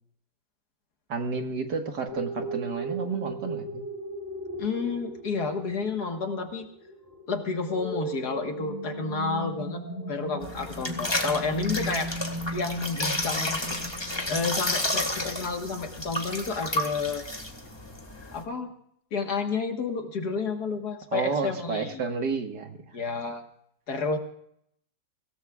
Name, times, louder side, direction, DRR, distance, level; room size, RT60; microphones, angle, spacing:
voice 1, 1.1-3.8 21.1-22.8, right 4 dB, 60° right, 4 dB, 2.1 m, -31 dB
sound 1, 2.1-15.2, right 1 dB, 10° right, 3.7 m, -37 dB
voice 2, 4.6-6.7 7.3-9.8 10.1-12.1 12.5-13.6 14.3-17.3 18.3-18.7 19.1-21.9 22.9-23.4 23.9-24.2, left 4 dB, 55° left, 4 dB, 2.0 m, -30 dB
sound 2, 10.4-18.4, left 1 dB, 15° left, 1.7 m, -31 dB
24.5 x 17.0 x 2.4 m, 0.70 s
omnidirectional pair, 2.1 m